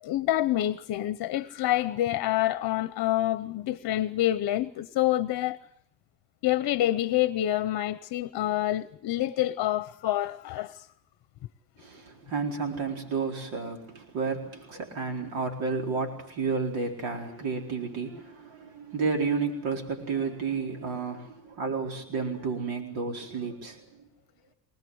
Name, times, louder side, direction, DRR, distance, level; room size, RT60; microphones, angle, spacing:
voice 1, 0.0-5.6 6.4-10.9, left 14 dB, 55° left, 0.9 m, -27 dB
voice 2, 11.8-24.0, right 4 dB, 80° right, 4.5 m, -31 dB
25.0 x 18.5 x 7.9 m
cardioid pair, 160°, 46 cm